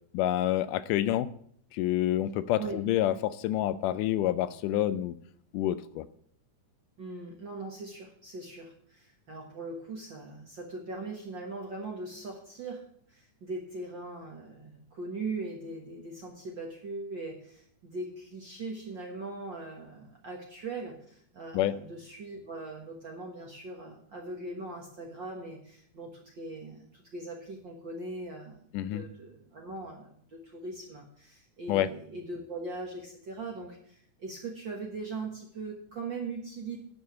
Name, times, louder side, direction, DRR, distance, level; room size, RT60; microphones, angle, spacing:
voice 1, 0.1-1.3 1.7-5.2 5.5-6.1 21.5-21.7 28.7-29.0 31.7-31.9, left 13 dB, 80° left, 13 dB, 2.0 m, -28 dB
voice 2, 7.0-36.8, right 3 dB, 50° right, 0 dB, 1.4 m, -40 dB
11.5 x 4.8 x 8.2 m, 0.64 s
omnidirectional pair, 3.8 m